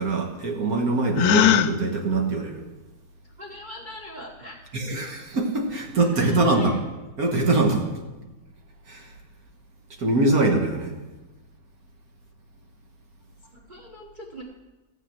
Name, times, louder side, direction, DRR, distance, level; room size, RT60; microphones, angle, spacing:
voice 1, 0.0-2.6 4.7-6.8 7.2-8.0 8.9-9.1 10.0-11.0, right 2 dB, 60° right, 2 dB, 1.9 m, -23 dB
Gasp, 1.1-1.7, left 10 dB, 70° left, 1.1 m, -18 dB
voice 2, 3.4-4.6 6.0-6.8 13.7-14.4, left 1 dB, 30° right, 0 dB, 1.3 m, -41 dB
14.0 x 7.8 x 6.0 m, 1.1 s
omnidirectional pair, 1.8 m